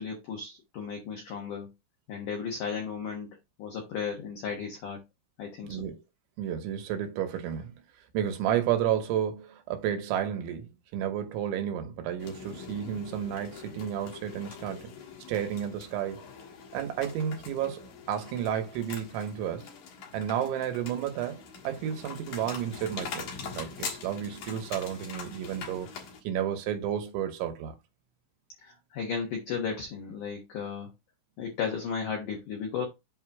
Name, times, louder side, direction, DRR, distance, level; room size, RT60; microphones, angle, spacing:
voice 1, 0.0-1.7 2.1-5.0 5.4-5.9 28.6-30.9 31.4-32.8, left 6 dB, 80° left, 1.8 m, -35 dB
voice 2, 5.7-6.0 6.4-7.7 8.1-14.9 15.3-16.3 16.7-19.7 20.1-25.9 26.2-27.7, right 10 dB, 75° right, 3.2 m, -32 dB
sound 1, 12.2-26.2, left 5 dB, 65° left, 2.3 m, -43 dB
8.3 x 2.8 x 4.6 m
omnidirectional pair, 5.7 m